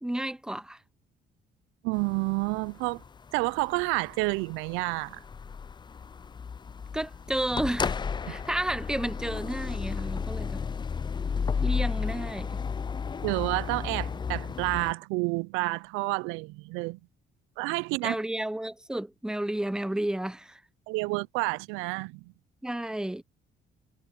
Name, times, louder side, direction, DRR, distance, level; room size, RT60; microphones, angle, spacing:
voice 1, 0.0-0.8 6.9-7.9 8.3-10.6 11.6-12.6 18.0-20.6 22.6-23.2, right 1 dB, 5° right, 0.8 m, -32 dB
voice 2, 1.8-3.0 3.3-5.2 8.3-8.4 13.2-17.0 17.6-18.1 20.9-22.3, right 25 dB, 90° right, 0.5 m, -29 dB
sound 1, 2.0-14.9, left 6 dB, 20° left, 0.4 m, -33 dB
supercardioid pair, 70°, 20 cm